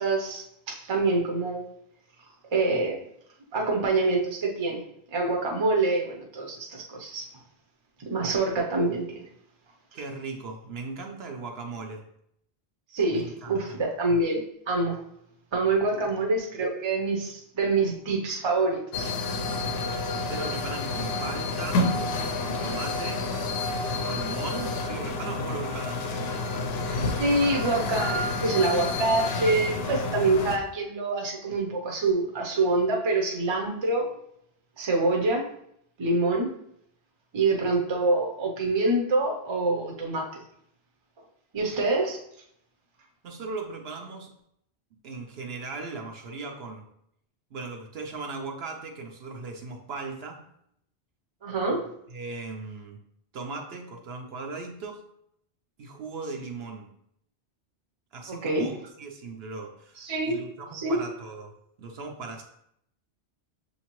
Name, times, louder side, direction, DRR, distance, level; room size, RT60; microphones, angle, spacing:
voice 1, 0.0-1.6 2.5-3.0 3.5-4.8 5.1-7.3 8.1-9.2 12.9-14.4 14.7-15.0 15.5-19.1 27.2-34.1 34.8-35.5 36.0-36.5 37.3-40.4 41.5-42.2 51.4-51.9 58.3-58.7 60.0-60.4 60.7-61.0, right 2 dB, 30° right, 0 dB, 0.6 m, -26 dB
voice 2, 9.9-12.0 13.1-13.5 15.9-16.0 19.7-22.0 22.4-23.4 23.7-26.3 43.2-44.3 45.0-46.9 47.5-50.5 52.1-53.0 53.3-55.0 55.8-56.9 58.1-62.4, right 4 dB, 70° right, 2 dB, 0.9 m, -38 dB
sound 1, 18.9-30.6, left 3 dB, 70° left, 0.8 m, -29 dB
6.5 x 2.8 x 3.0 m, 0.73 s
omnidirectional pair, 1.1 m